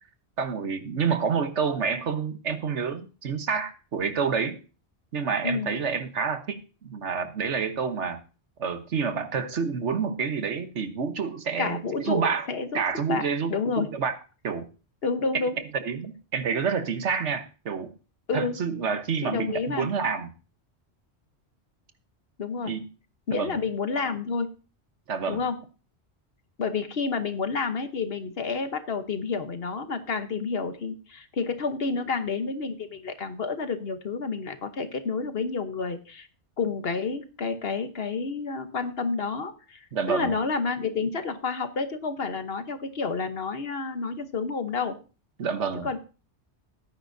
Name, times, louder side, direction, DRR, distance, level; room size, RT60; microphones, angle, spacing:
voice 1, 0.4-4.6 5.1-8.2 8.6-12.5 12.7-14.1 14.4-14.7 15.8-17.9 18.3-20.3 22.7-22.9 23.3-23.5 25.1-25.4 39.9-40.4 45.4-45.9, right 6 dB, 85° right, 9 dB, 1.4 m, -28 dB
voice 2, 11.6-12.8 13.1-13.9 15.0-15.5 18.3-18.6 19.2-19.9 22.4-22.7 23.3-24.5 25.3-25.6 26.6-36.3 36.6-45.0 45.8-46.0, left 4 dB, 60° left, 8 dB, 1.3 m, -29 dB
17.0 x 9.6 x 2.7 m, 0.34 s
omnidirectional pair, 1.2 m